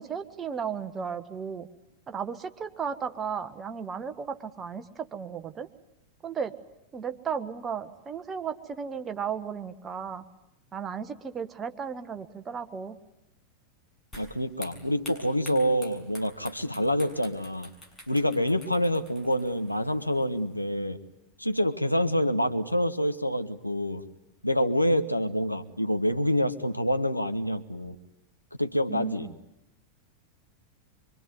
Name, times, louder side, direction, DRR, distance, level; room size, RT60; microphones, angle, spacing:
voice 1, 0.0-1.7 2.1-5.7 6.2-6.5 6.9-10.2 10.7-13.0 28.9-29.3, right 6 dB, 20° right, 8 dB, 1.5 m, -35 dB
sound 1, 14.1-20.7, left 1 dB, 15° left, 7.1 m, -49 dB
voice 2, 14.2-17.7 18.1-21.0 21.4-24.0 24.4-28.0 28.6-29.3, equal, 90° left, 8 dB, 1.2 m, -27 dB
25.0 x 24.5 x 9.6 m, 0.86 s
figure-of-eight pair, 90°, 0 cm